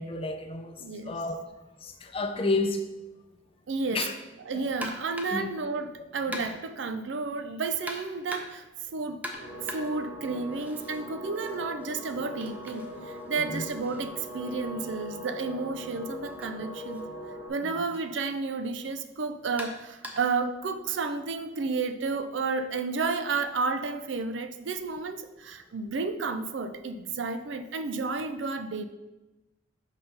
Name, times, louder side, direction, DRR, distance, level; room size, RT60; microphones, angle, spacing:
voice 1, 0.0-0.8 1.0-1.5 1.8-2.8 3.9-4.1 4.5-4.6 5.3-5.5 13.5-13.6 17.6-17.8, left 2 dB, 30° left, 6 dB, 0.6 m, -31 dB
voice 2, 0.8-1.1 3.7-4.1 4.5-8.6 8.9-9.2 9.6-17.1 17.5-28.8, right 4 dB, 80° right, 9 dB, 0.5 m, -31 dB
sound 1, 4.8-5.5 6.3-6.8 7.9-8.7 9.2-11.0 11.3-15.2 16.3-16.5 16.9-17.0 17.9-18.1 19.6-20.4, equal, 10° right, 0.6 m, -42 dB
sound 2, 9.3-17.5, equal, 55° right, 2.0 m, -41 dB
5.7 x 4.1 x 5.4 m, 1.0 s
head